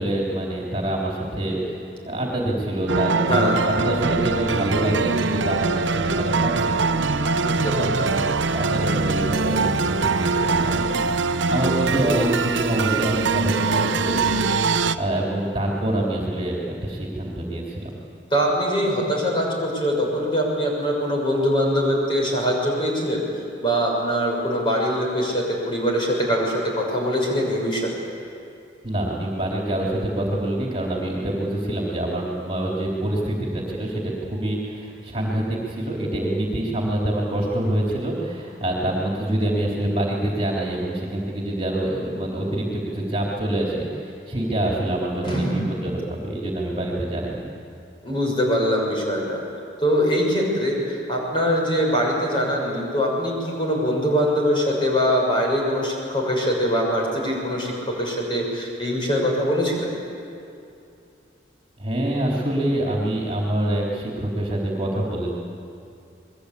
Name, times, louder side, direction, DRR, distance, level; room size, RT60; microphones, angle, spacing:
voice 1, 0.0-6.9 7.5-7.8 8.1-17.9 28.8-47.5 61.8-65.3, right 1 dB, 30° right, -3 dB, 3.6 m, -26 dB
sound 1, 2.9-15.0, right 4 dB, 85° right, 0.9 m, -22 dB
voice 2, 3.3-3.6 7.4-8.2 18.3-23.2 23.6-27.9 45.2-45.8 48.0-49.4 49.8-59.9, equal, 25° left, -2 dB, 6.4 m, -23 dB
28.5 x 21.5 x 8.5 m, 2.6 s
head